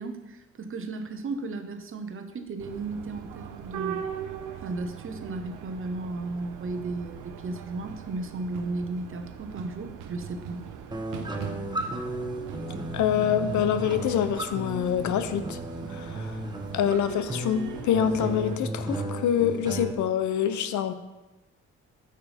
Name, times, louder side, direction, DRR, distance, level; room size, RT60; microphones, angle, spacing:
voice 1, 0.0-4.0 4.6-10.6, right 3 dB, 45° right, 7 dB, 1.0 m, -35 dB
sound 1, 2.6-18.6, right 8 dB, 90° right, 0.7 m, -40 dB
sound 2, 10.9-19.9, right 1 dB, 15° right, 1.1 m, -35 dB
voice 2, 12.9-15.6 15.9-16.3 16.7-20.9, left 9 dB, 75° left, 11 dB, 0.7 m, -26 dB
9.5 x 6.6 x 3.5 m, 1.1 s
cardioid pair, 90°, 30 cm